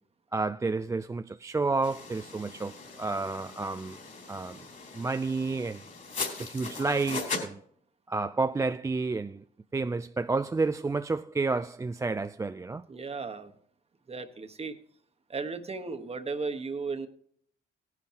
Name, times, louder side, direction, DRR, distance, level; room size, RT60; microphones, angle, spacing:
voice 1, 0.3-4.0 4.3-4.6 4.9-5.8 6.4-7.6 8.1-9.4 9.7-12.8, right 3 dB, 15° right, 0.3 m, -30 dB
sound 1, 1.8-7.5, left 4 dB, 40° left, 3.9 m, -39 dB
voice 2, 12.9-13.5 14.1-14.8 15.3-17.1, right 4 dB, 30° right, 1.2 m, -35 dB
17.5 x 10.5 x 2.9 m
cardioid pair, 90°, 20 cm